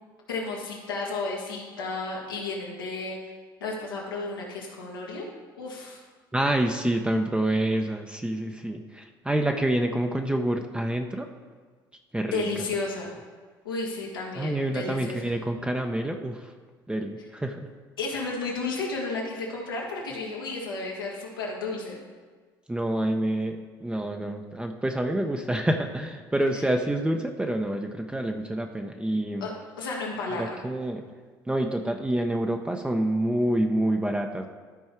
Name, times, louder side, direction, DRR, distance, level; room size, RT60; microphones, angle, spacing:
voice 1, 0.3-3.2 3.6-5.3 5.6-6.0 12.3-13.1 13.6-15.3 18.0-22.0 29.4-29.5 29.8-30.5, left 3 dB, 90° left, -3 dB, 2.0 m, -32 dB
voice 2, 6.3-11.3 12.1-12.5 14.4-16.5 16.9-17.7 22.7-29.5 30.4-31.0 31.5-34.5, right 1 dB, 10° right, 3 dB, 0.8 m, -27 dB
13.0 x 4.5 x 4.5 m, 1.5 s
hypercardioid pair, 65°, 11 cm